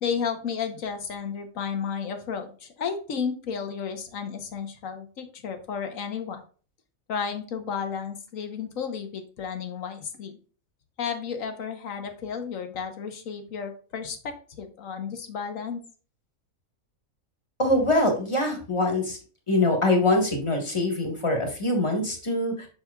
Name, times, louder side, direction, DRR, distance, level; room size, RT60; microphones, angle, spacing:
voice 1, 0.0-6.4 7.1-10.3 11.0-15.8, left 6 dB, 75° left, 7 dB, 1.4 m, -32 dB
voice 2, 17.6-19.2 19.5-22.7, left 1 dB, 20° left, 3 dB, 1.5 m, -24 dB
6.8 x 6.1 x 2.3 m, 0.39 s
omnidirectional pair, 1.4 m